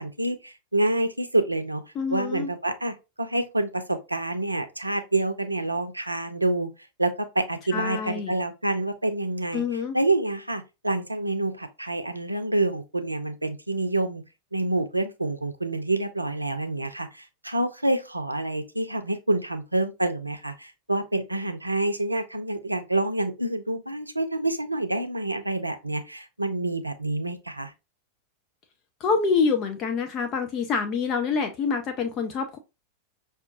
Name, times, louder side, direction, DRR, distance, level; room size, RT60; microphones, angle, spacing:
voice 1, 0.0-1.8 2.1-6.7 7.0-14.2 14.5-27.7, right 2 dB, 85° right, 0.5 m, -27 dB
voice 2, 2.0-2.5 7.7-8.3 9.5-10.0 29.0-32.6, left 5 dB, 35° left, 0.5 m, -26 dB
5.8 x 2.4 x 2.4 m
figure-of-eight pair, 90°, 0 cm